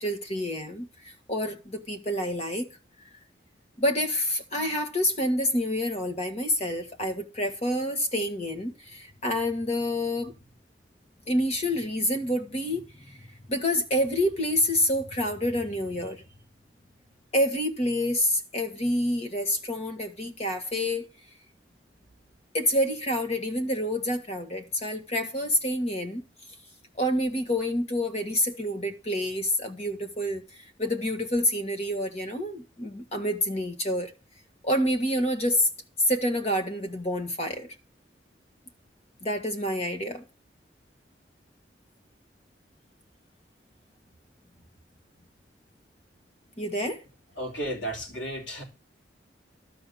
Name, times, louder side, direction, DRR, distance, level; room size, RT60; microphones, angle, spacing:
voice 1, 0.0-2.7 3.8-10.3 11.3-12.8 13.2-16.2 17.3-21.1 22.5-26.2 27.0-34.1 34.6-35.7 36.1-37.7 39.2-40.2 46.6-47.0, left 1 dB, 35° left, 1.7 m, -28 dB
voice 2, 47.4-48.6, right 1 dB, 85° left, 3.8 m, -33 dB
12.0 x 5.3 x 7.8 m
head